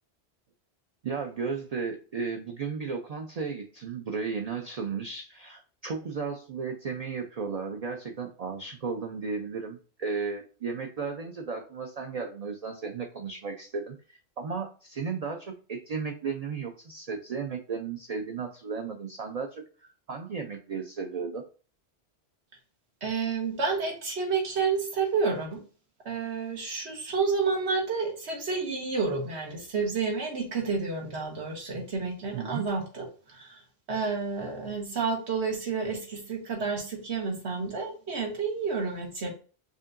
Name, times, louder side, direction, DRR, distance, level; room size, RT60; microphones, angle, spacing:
voice 1, 1.0-21.4 32.3-32.7, right 5 dB, 50° right, 3 dB, 0.5 m, -34 dB
voice 2, 23.0-25.6 26.0-33.6 33.9-39.3, right 4 dB, 80° right, 0 dB, 1.5 m, -30 dB
5.0 x 2.7 x 2.5 m, 0.38 s
omnidirectional pair, 1.1 m